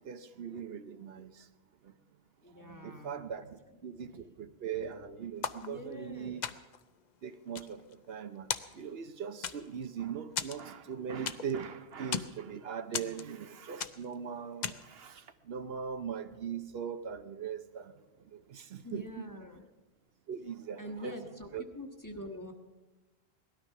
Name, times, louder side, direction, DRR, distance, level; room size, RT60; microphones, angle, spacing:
voice 1, 0.0-1.3 2.6-6.4 7.2-7.8 8.1-8.5 8.8-15.2 15.5-17.9 18.5-19.2 20.3-21.1 21.5-21.6, right 7 dB, 70° right, 9 dB, 0.9 m, -40 dB
voice 2, 2.4-3.5 5.6-6.4 18.8-19.6 20.8-22.5, left 1 dB, 20° left, 3 dB, 1.3 m, -45 dB
sound 1, 5.4-6.1 6.4-6.9 7.3-8.2 8.5-9.1 9.4-9.9 10.4-11.6 11.9-12.4 12.9-13.5 13.8-14.2 14.6-15.0, left 7 dB, 50° left, 0.7 m, -37 dB
18.5 x 12.5 x 5.8 m, 1.2 s
omnidirectional pair, 1.1 m